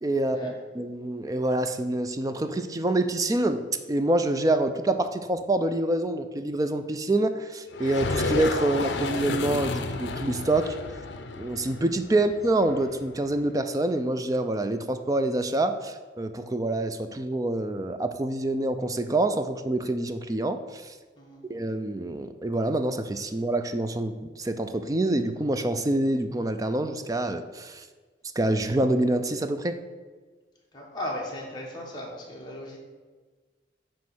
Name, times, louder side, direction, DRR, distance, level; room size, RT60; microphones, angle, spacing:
voice 1, 0.0-10.7 11.4-20.9 21.4-27.8 28.4-29.8, right 1 dB, 20° right, 9 dB, 0.4 m, -26 dB
sound 1, 7.7-13.4, left 3 dB, 80° left, 0.5 m, -32 dB
voice 2, 30.7-32.8, left 1 dB, 25° left, -3 dB, 1.5 m, -36 dB
9.2 x 3.1 x 6.1 m, 1.4 s
head